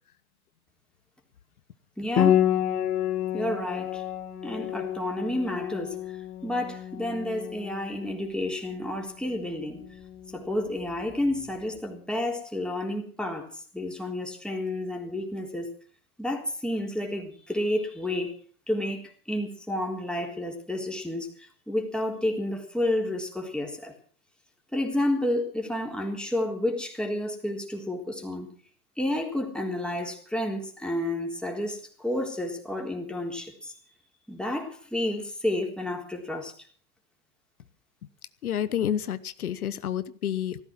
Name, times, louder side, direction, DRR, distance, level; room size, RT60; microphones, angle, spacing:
voice 1, 2.0-2.4 3.3-4.0 4.4-9.8 10.3-15.7 16.2-18.3 18.7-24.0 24.7-28.5 29.0-33.7 34.3-36.5, left 1 dB, ahead, 1 dB, 3.7 m, -30 dB
Piano, 2.2-11.5, left 10 dB, 40° left, 3.4 m, -30 dB
voice 2, 38.4-40.6, left 9 dB, 85° left, 15 dB, 1.1 m, -29 dB
16.0 x 13.5 x 6.1 m, 0.43 s
hypercardioid pair, 100°, 43 cm